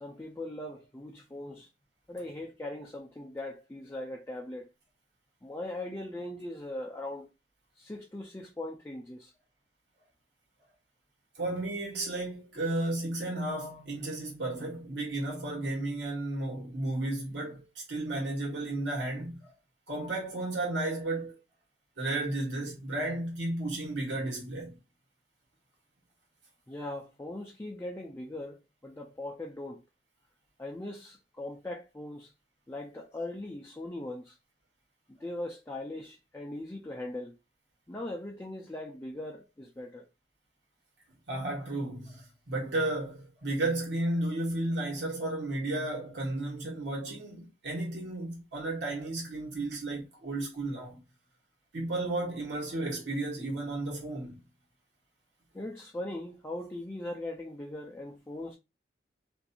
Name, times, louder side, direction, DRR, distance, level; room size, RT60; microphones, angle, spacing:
voice 1, 0.0-1.7 2.1-4.7 5.4-7.3 7.8-9.3 26.7-29.8 30.6-32.3 32.7-34.4 35.1-37.4 37.9-40.1 55.5-58.5, left 1 dB, 15° left, 0.4 m, -40 dB
voice 2, 11.4-19.5 19.9-21.4 22.0-24.8 41.3-42.2 42.5-51.0 51.7-54.4, right 2 dB, 85° right, 1.3 m, -33 dB
2.6 x 2.4 x 2.7 m
head